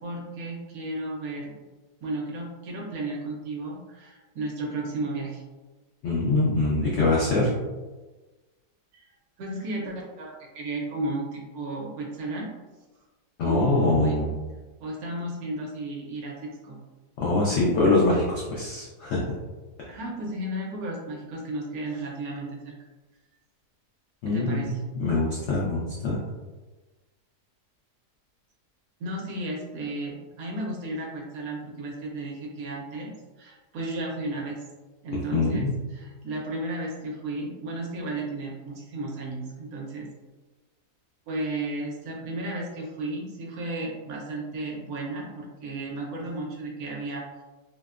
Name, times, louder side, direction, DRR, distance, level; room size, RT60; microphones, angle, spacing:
voice 1, 0.0-1.5 2.0-5.4 8.9-9.1 9.4-12.5 13.4-14.2 14.8-16.8 19.9-22.8 24.2-24.8 29.0-33.1 33.4-34.6 35.0-40.1 41.3-47.3, right 2 dB, 70° right, -1 dB, 1.0 m, -34 dB
voice 2, 6.0-7.5 13.4-14.3 17.2-19.2 24.2-26.2 35.3-35.7, left 2 dB, 80° left, -5 dB, 0.6 m, -24 dB
2.8 x 2.1 x 2.3 m, 1.2 s
omnidirectional pair, 1.7 m